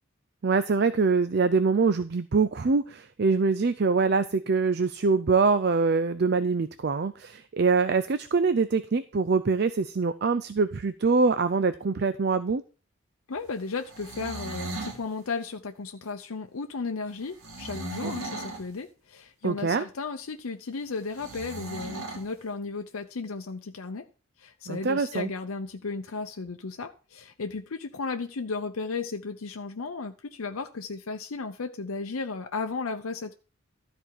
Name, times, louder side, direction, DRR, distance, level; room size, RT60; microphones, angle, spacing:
voice 1, 0.4-12.6 18.0-18.1 19.4-19.9 24.7-25.3, right 4 dB, 50° right, 0.4 m, -24 dB
voice 2, 13.3-24.1 24.4-33.3, left 4 dB, 90° left, 0.7 m, -34 dB
sound 1, 13.8-15.0 17.4-18.7 21.2-22.3, right 2 dB, 90° right, 2.3 m, -37 dB
12.5 x 4.4 x 6.4 m
head